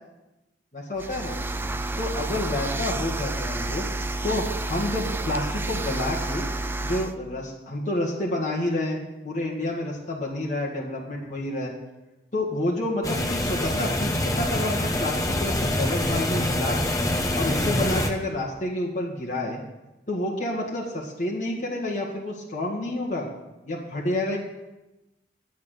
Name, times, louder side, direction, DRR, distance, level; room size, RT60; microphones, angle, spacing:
voice 1, 0.7-1.3 2.0-3.8 4.2-6.4 6.8-9.0 9.2-11.7 12.3-13.0 13.3-16.9 17.4-19.6 20.1-23.3 23.6-24.4, left 1 dB, 40° left, -3 dB, 2.1 m, -29 dB
sound 1, 1.0-7.1, right 2 dB, 10° right, 0.4 m, -30 dB
sound 2, 13.0-18.1, left 1 dB, 20° left, 0.9 m, -25 dB
12.0 x 9.3 x 6.7 m, 1.0 s
head